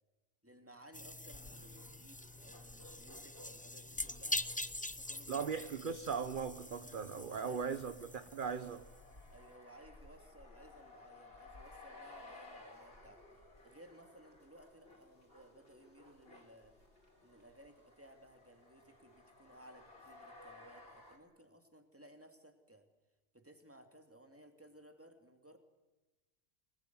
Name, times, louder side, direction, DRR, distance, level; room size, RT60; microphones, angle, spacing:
voice 1, 0.4-4.5 4.9-5.6 7.1-7.6 8.4-8.8 9.3-13.2 13.6-16.8 17.2-22.8 23.3-25.6, right 1 dB, 10° right, 5 dB, 2.7 m, -59 dB
sound 1, 0.9-9.0, left 1 dB, 10° left, 0.4 m, -44 dB
sound 2, 1.3-21.2, left 2 dB, 45° left, 4.2 m, -58 dB
voice 2, 5.3-8.8, right 6 dB, 40° right, 11 dB, 1.0 m, -39 dB
25.5 x 20.0 x 9.5 m, 1.1 s
omnidirectional pair, 1.4 m